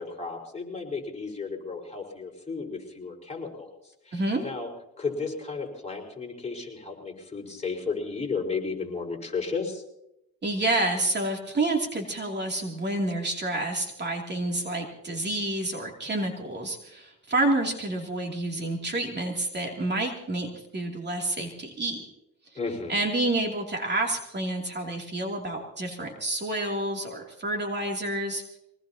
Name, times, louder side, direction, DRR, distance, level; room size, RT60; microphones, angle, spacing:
voice 1, 0.0-3.7 4.1-4.7 5.0-9.8 22.5-23.0, left 4 dB, 20° left, -2 dB, 4.9 m, -33 dB
voice 2, 4.1-4.4 10.4-22.1 22.9-28.4, right 2 dB, 35° right, 1 dB, 2.9 m, -29 dB
24.0 x 19.0 x 2.9 m, 0.84 s
cardioid pair, 90°, 30 cm